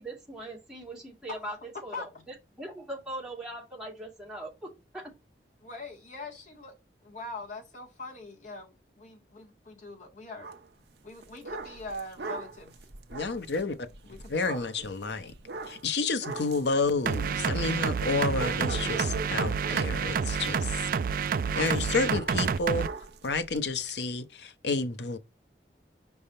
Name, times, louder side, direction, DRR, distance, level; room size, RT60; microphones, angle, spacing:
voice 1, 0.0-5.1, right 1 dB, 5° right, 2.4 m, -41 dB
voice 2, 5.6-6.7 7.0-10.5 11.0-12.7 13.3-13.4 14.0-14.7, left 2 dB, 45° left, 1.7 m, -42 dB
sound 1, 10.4-10.7 11.1-18.0 18.3-23.9, right 3 dB, 70° right, 0.8 m, -41 dB
voice 3, 13.1-13.9 14.3-15.3 15.7-20.7 21.5-22.9 23.2-25.2, left 3 dB, 75° left, 0.8 m, -30 dB
sound 2, 17.1-22.9, right 6 dB, 50° right, 0.3 m, -29 dB
5.4 x 3.5 x 5.5 m
head